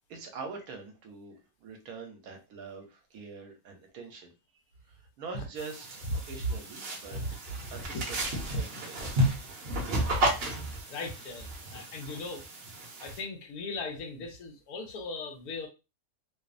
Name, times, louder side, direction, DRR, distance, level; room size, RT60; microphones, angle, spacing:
voice 1, 0.1-4.3 4.9-7.2 7.7-8.9, right 4 dB, 80° right, 3 dB, 1.2 m, -44 dB
sound 1, 5.6-13.2, right 1 dB, 50° right, 0.8 m, -33 dB
voice 2, 7.1-8.4 10.9-12.4 13.0-15.7, left 2 dB, 80° left, 3 dB, 1.2 m, -39 dB
2.9 x 2.0 x 2.4 m, 0.28 s
omnidirectional pair, 1.6 m